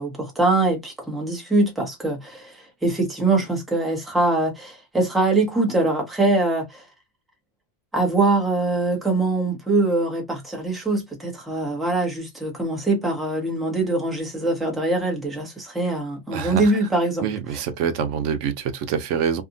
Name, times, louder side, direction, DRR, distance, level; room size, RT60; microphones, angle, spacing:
voice 1, 0.0-6.8 7.9-17.3 17.5-17.6, right 2 dB, ahead, 0.8 m, -23 dB
voice 2, 16.3-16.7 17.2-19.4, right 7 dB, 90° right, 0.9 m, -25 dB
2.8 x 2.4 x 2.6 m
omnidirectional pair, 1.2 m